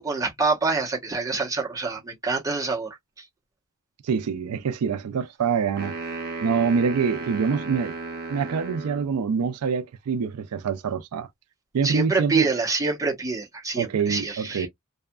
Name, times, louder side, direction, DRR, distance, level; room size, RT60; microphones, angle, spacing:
voice 1, 0.0-2.9 3.2-3.3 11.8-14.7, right 3 dB, 15° right, 0.9 m, -26 dB
voice 2, 4.0-5.9 6.4-7.9 8.3-11.3 11.7-12.5 13.8-14.7, right 6 dB, 90° right, 0.4 m, -25 dB
sound 1, 5.8-9.1, right 3 dB, 45° right, 0.6 m, -34 dB
2.7 x 2.4 x 2.2 m
head